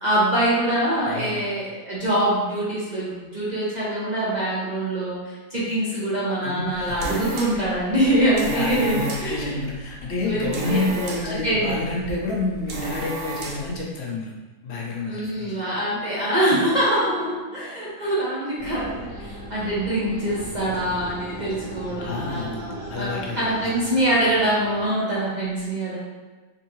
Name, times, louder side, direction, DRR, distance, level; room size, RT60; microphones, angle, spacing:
voice 1, 0.0-9.5 10.2-10.8 11.2-11.8 15.1-26.0, right 1 dB, 40° right, -8 dB, 0.6 m, -24 dB
voice 2, 1.1-1.5 6.4-7.2 7.5-7.6 8.4-14.3 14.6-15.6 22.0-22.6 22.9-24.0, left 2 dB, 60° left, -2 dB, 0.7 m, -29 dB
sound 1, 6.6-13.8, right 2 dB, 80° right, 0.5 m, -34 dB
sound 2, 18.6-24.9, equal, 55° right, 1.5 m, -37 dB
3.6 x 3.4 x 3.0 m, 1.2 s
omnidirectional pair, 1.9 m